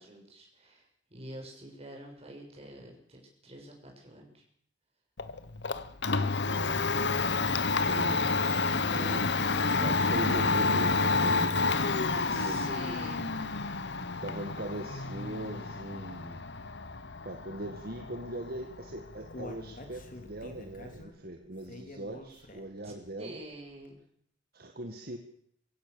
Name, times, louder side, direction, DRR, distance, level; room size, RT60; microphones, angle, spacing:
voice 1, 0.0-4.4 12.2-13.3 22.8-24.0, right 1 dB, 35° right, 0 dB, 6.8 m, -47 dB
Domestic sounds home sounds, 5.2-21.0, left 4 dB, 65° left, 1.3 m, -30 dB
voice 2, 6.5-6.8 7.9-9.4 9.8-11.8 12.1-12.7 13.2-13.3 14.2-16.5 17.2-23.4 24.5-25.2, right 1 dB, 55° right, 5 dB, 1.8 m, -40 dB
Human voice, 18.8-22.9 23.3-23.4 23.8-23.9, left 2 dB, 50° left, 3.2 m, -47 dB
24.0 x 16.0 x 7.0 m, 0.69 s
head